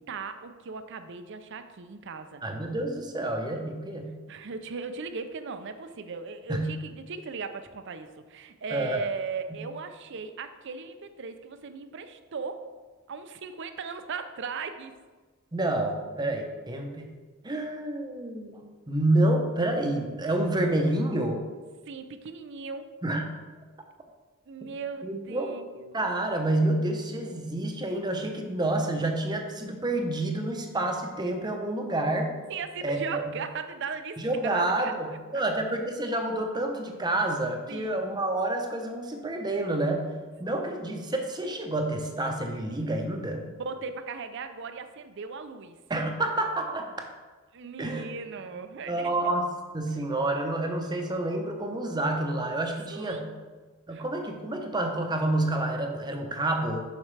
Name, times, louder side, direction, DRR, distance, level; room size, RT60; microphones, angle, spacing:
voice 1, 0.1-2.4 4.3-12.7 13.1-14.9 21.9-22.9 24.5-26.1 32.5-34.9 35.3-35.4 37.7-38.0 43.4-45.8 47.5-49.1 52.9-53.2 53.9-54.0, right 5 dB, 60° right, 9 dB, 0.5 m, -37 dB
voice 2, 2.4-4.1 6.5-6.7 8.7-9.0 15.5-17.1 17.4-21.4 23.0-23.2 25.0-25.5 25.9-32.3 32.8-33.2 34.2-40.1 40.4-43.4 45.9-46.9 47.8-48.1 48.9-49.5 49.7-53.3 53.9-56.8, right 1 dB, 20° right, 3 dB, 0.8 m, -28 dB
7.3 x 5.9 x 3.3 m, 1.3 s
head